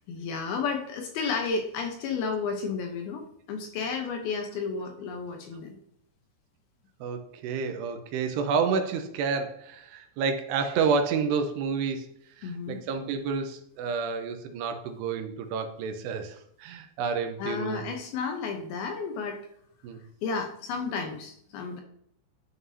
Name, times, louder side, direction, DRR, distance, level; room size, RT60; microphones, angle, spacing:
voice 1, 0.1-5.8 12.4-12.8 17.4-19.4 20.2-21.8, left 5 dB, 75° left, 3 dB, 2.4 m, -32 dB
voice 2, 7.0-12.1 12.4-18.0 19.8-20.0, right 5 dB, 80° right, 6 dB, 2.8 m, -29 dB
11.0 x 5.8 x 2.7 m, 0.70 s
omnidirectional pair, 5.0 m